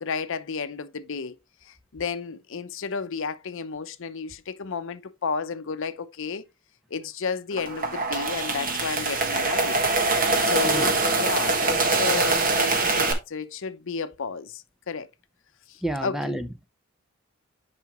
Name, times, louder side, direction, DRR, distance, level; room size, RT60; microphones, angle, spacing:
voice 1, 0.0-1.4 1.6-6.4 6.9-9.8 10.3-15.1 15.7-16.3, left 5 dB, 60° left, 0.7 m, -32 dB
sound 1, 7.5-13.1, right 3 dB, 40° right, 1.4 m, -23 dB
voice 2, 15.8-16.7, right 1 dB, ahead, 0.6 m, -30 dB
9.4 x 5.0 x 3.0 m
head